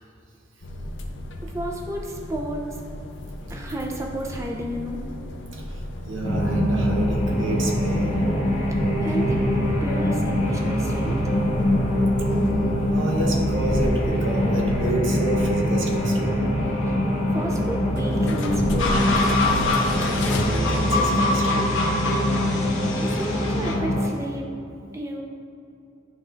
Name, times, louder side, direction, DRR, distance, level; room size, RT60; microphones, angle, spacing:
sound 1, 0.6-20.4, left 1 dB, 70° left, 0.6 m, -35 dB
voice 1, 1.4-2.8 3.5-5.0 8.7-11.2 16.9-17.0 17.3-19.2 23.0-24.5 24.9-25.2, right 1 dB, 15° right, 0 dB, 0.5 m, -32 dB
voice 2, 5.5-8.2 12.3-12.4 12.9-16.4 20.2-21.8, right 1 dB, 85° right, -1 dB, 1.0 m, -29 dB
sound 2, 6.2-24.1, equal, 40° left, 1.0 m, -23 dB
sound 3, 18.8-23.7, left 2 dB, 90° left, 0.9 m, -26 dB
11.0 x 3.6 x 2.5 m, 2.6 s
head